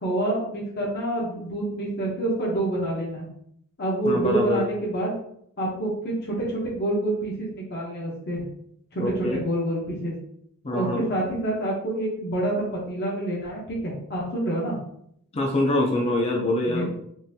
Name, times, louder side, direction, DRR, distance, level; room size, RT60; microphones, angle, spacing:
voice 1, 0.0-3.3 3.8-5.1 5.6-8.4 8.9-10.1 10.7-14.8 16.6-16.9, right 1 dB, 45° left, -3 dB, 0.8 m, -27 dB
voice 2, 4.0-4.6 9.0-9.4 10.6-11.1 15.3-16.9, left 1 dB, 30° left, 0 dB, 0.5 m, -24 dB
3.8 x 2.6 x 2.7 m, 0.71 s
head